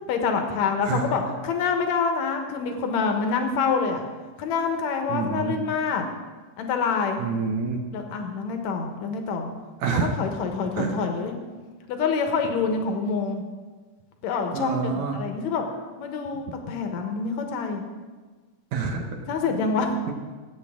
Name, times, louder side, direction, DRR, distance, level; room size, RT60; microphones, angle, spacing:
voice 1, 0.1-4.1 4.4-6.1 6.6-7.2 7.9-9.5 10.2-11.3 11.9-13.4 14.2-15.6 16.0-17.8 19.3-20.0, left 5 dB, 65° left, 5 dB, 2.1 m, -26 dB
voice 2, 5.1-5.6 7.2-7.8 9.8-10.1 10.8-11.0 14.5-15.2 18.7-19.0 19.4-19.6, right 5 dB, 65° right, 3 dB, 2.2 m, -27 dB
18.0 x 8.4 x 3.6 m, 1.4 s
omnidirectional pair, 3.9 m